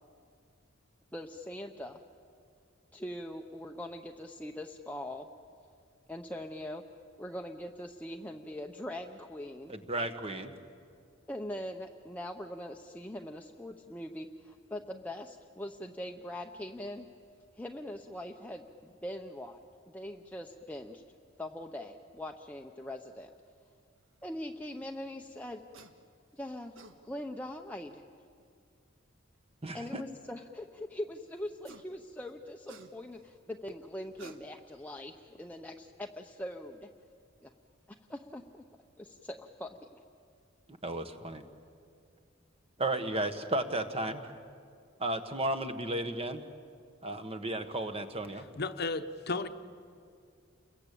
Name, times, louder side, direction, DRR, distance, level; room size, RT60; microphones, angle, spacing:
voice 1, 1.1-2.0 2.9-5.3 6.1-6.8 7.2-9.8 11.3-17.1 17.6-19.6 19.9-21.0 21.4-23.3 24.2-25.6 26.3-26.7 27.0-28.0 29.7-36.9 37.4-37.5 37.9-38.6 39.0-39.8, left 1 dB, 10° left, 2 dB, 0.8 m, -42 dB
voice 2, 9.7-10.5 29.6-30.0 40.8-41.4 42.8-44.3 45.0-46.4 47.0-48.5, right 1 dB, 30° right, 8 dB, 1.5 m, -34 dB
sound 1, 25.7-26.0 26.5-27.0 28.4-28.5 31.4-31.9 32.3-33.3 34.0-34.8, right 3 dB, 75° right, 1.6 m, -53 dB
voice 3, 48.5-49.5, left 3 dB, 55° left, 9 dB, 1.0 m, -33 dB
30.0 x 22.0 x 8.5 m, 2.3 s
head